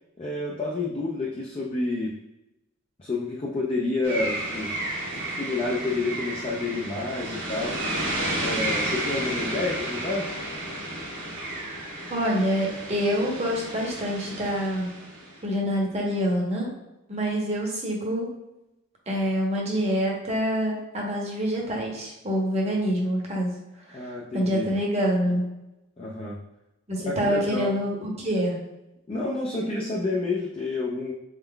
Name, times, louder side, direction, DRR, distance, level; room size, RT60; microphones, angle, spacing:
voice 1, 0.2-2.2 3.0-4.7 5.1-7.8 8.3-10.3 23.9-24.7 26.0-26.4 27.0-27.7 29.1-31.1, left 3 dB, 25° left, -3 dB, 0.5 m, -29 dB
sound 1, 4.0-15.4, right 1 dB, 65° right, 1.5 m, -32 dB
voice 2, 12.1-14.9 15.4-16.7 17.1-18.3 19.1-23.5 23.9-25.4 26.9-28.6, equal, 30° right, -2 dB, 0.9 m, -26 dB
4.2 x 3.7 x 2.2 m, 0.94 s
head